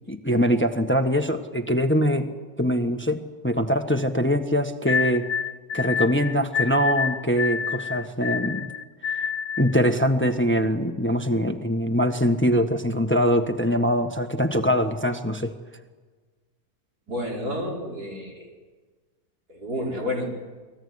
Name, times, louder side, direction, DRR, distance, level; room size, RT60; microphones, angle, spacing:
voice 1, 0.1-2.3 2.6-5.3 5.7-8.7 9.1-9.2 9.6-15.5, equal, 10° left, 7 dB, 1.3 m, -23 dB
sound 1, 4.9-9.8, left 7 dB, 80° left, 1.6 m, -28 dB
voice 2, 17.1-18.5 19.5-20.3, left 1 dB, 85° right, -1 dB, 6.1 m, -30 dB
29.5 x 20.5 x 9.7 m, 1.4 s
omnidirectional pair, 1.6 m